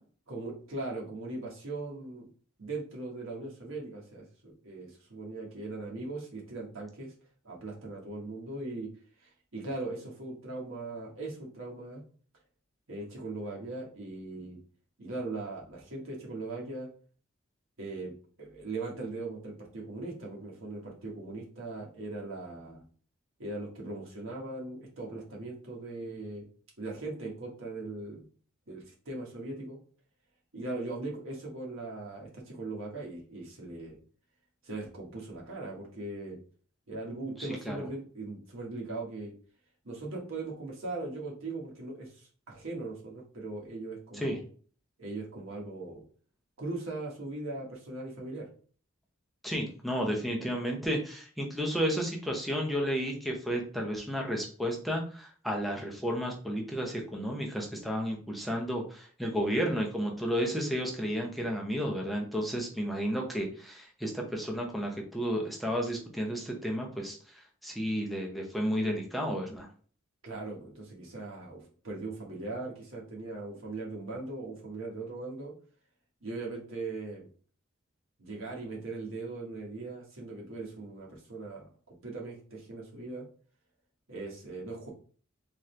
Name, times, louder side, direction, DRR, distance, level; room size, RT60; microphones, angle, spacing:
voice 1, 0.3-2.3 2.6-7.1 7.4-8.9 9.2-12.0 12.9-14.6 15.0-16.9 17.8-22.8 23.4-26.4 26.8-28.2 28.7-29.8 30.5-34.0 34.6-36.4 36.9-39.3 39.8-44.4 45.0-46.0 46.6-48.5 70.2-75.5 76.2-77.3 78.2-83.2 84.1-84.9, right 2 dB, 80° right, -2 dB, 1.4 m, -39 dB
voice 2, 37.4-37.8 44.1-44.4 49.4-69.7, equal, ahead, 0 dB, 0.7 m, -32 dB
3.7 x 3.0 x 3.2 m, 0.43 s
head